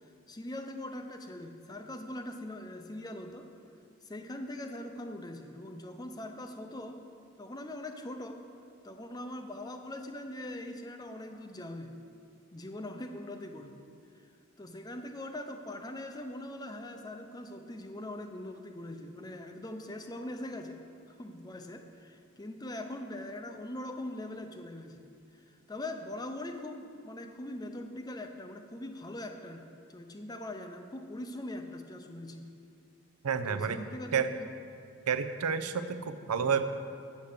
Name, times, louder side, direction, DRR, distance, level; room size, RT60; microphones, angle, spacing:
voice 1, 0.0-3.5 4.0-7.0 7.4-8.4 8.8-11.9 12.5-13.8 14.1-14.3 14.6-20.8 21.1-25.1 25.3-29.6 29.9-32.5 33.5-34.5, left 1 dB, 15° left, 6 dB, 0.5 m, -42 dB
voice 2, 33.2-33.8 34.1-34.3 35.1-36.7, right 6 dB, 90° right, 10 dB, 0.6 m, -30 dB
8.3 x 7.3 x 6.6 m, 2.4 s
head